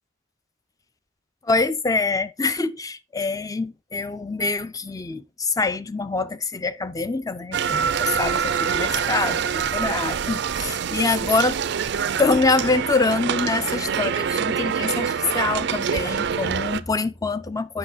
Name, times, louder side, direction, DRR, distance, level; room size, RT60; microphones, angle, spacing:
voice 1, 1.4-11.6 12.2-17.8, left 3 dB, 20° left, 0.5 m, -25 dB
sound 1, 7.5-16.8, right 7 dB, 65° right, 0.4 m, -25 dB
7.9 x 5.9 x 4.1 m
head